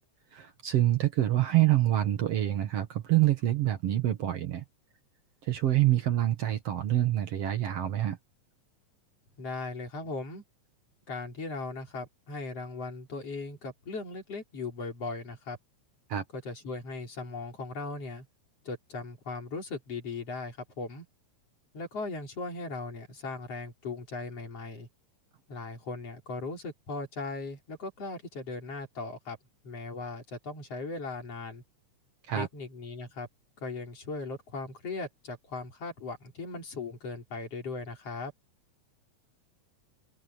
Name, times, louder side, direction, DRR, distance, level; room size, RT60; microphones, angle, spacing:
voice 1, 0.3-4.6 5.4-8.2 16.1-16.2 32.3-32.5, right 13 dB, 60° right, 2.1 m, -26 dB
voice 2, 9.4-10.4 11.1-15.6 16.3-18.3 18.7-21.1 21.7-24.9 25.5-29.4 29.6-31.6 32.3-33.3 33.6-38.3, left 3 dB, 50° left, 5.2 m, -38 dB
omnidirectional pair, 3.5 m